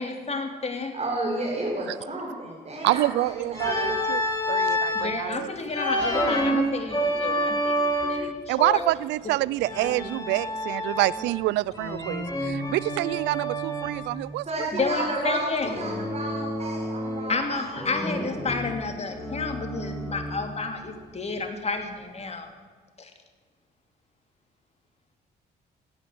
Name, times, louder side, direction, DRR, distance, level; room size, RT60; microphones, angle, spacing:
voice 1, 0.0-0.9 4.9-8.8 14.7-15.7 17.3-22.5 23.0-23.1, left 4 dB, 35° left, 5 dB, 2.7 m, -31 dB
voice 2, 0.9-3.9 14.4-17.8, right 2 dB, 35° right, -4 dB, 4.7 m, -32 dB
voice 3, 2.8-5.5 8.2-15.1, right 18 dB, 80° right, 21 dB, 0.4 m, -27 dB
Organ, 3.5-5.2 5.7-8.4 9.6-11.4 11.7-14.1 15.6-17.4 17.7-20.5, equal, 20° left, 5.7 m, -28 dB
16.0 x 9.6 x 7.8 m, 1.5 s
supercardioid pair, 60°, 18 cm